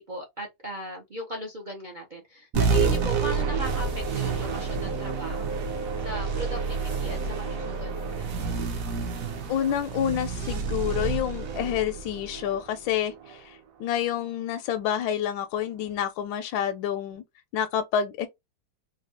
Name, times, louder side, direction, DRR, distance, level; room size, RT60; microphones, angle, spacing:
voice 1, 0.0-5.6 6.0-8.7, right 1 dB, 75° right, 0.4 m, -38 dB
sound 1, 2.5-13.4, right 5 dB, 55° right, 1.0 m, -29 dB
sound 2, 2.7-8.2, right 2 dB, 35° left, 0.4 m, -37 dB
voice 2, 9.5-17.2 17.5-18.3, left 9 dB, 80° left, 1.3 m, -28 dB
3.9 x 2.3 x 2.9 m
omnidirectional pair, 2.1 m